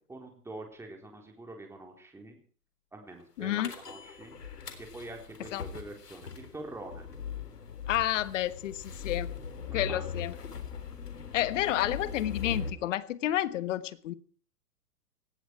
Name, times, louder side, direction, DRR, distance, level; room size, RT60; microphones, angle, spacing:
voice 1, 0.1-2.4 2.9-4.4 4.8-7.0 9.7-10.0, right 2 dB, 5° right, 4.0 m, -45 dB
voice 2, 3.4-3.7 5.5-5.6 7.9-9.3 9.7-10.3 11.3-14.1, left 13 dB, 50° left, 1.4 m, -30 dB
sound 1, 3.6-12.7, left 6 dB, 85° left, 3.8 m, -40 dB
18.5 x 15.5 x 4.7 m
hypercardioid pair, 130°, 46 cm